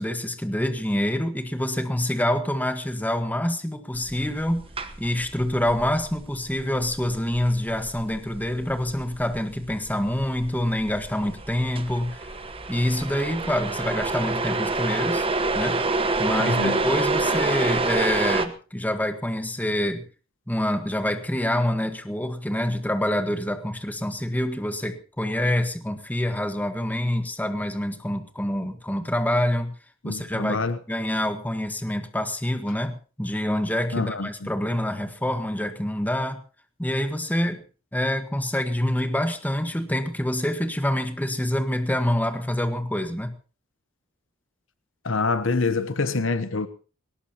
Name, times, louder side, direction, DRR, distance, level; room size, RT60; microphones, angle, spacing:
voice 1, 0.0-4.7 5.0-12.3 12.7-15.3 15.5-15.8 16.2-20.0 20.5-29.7 30.0-30.6 30.9-36.4 36.8-37.6 37.9-43.3, left 1 dB, 10° left, 1.5 m, -26 dB
sound 1, 3.9-18.5, right 3 dB, 25° right, 1.2 m, -28 dB
voice 2, 16.4-16.8 30.0-30.8 33.9-34.5 45.0-46.7, left 3 dB, 65° left, 1.0 m, -26 dB
21.0 x 18.5 x 3.0 m
head